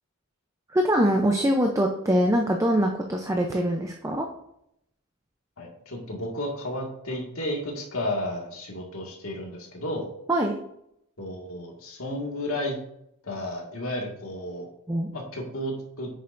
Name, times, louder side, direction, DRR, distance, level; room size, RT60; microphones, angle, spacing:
voice 1, 0.7-4.3 10.3-10.6 14.9-15.1, equal, 15° right, 2 dB, 0.6 m, -23 dB
voice 2, 5.6-10.1 11.2-12.8 13.2-14.7 15.1-16.1, left 1 dB, 70° left, 0 dB, 1.9 m, -32 dB
8.9 x 6.8 x 2.6 m, 0.75 s
head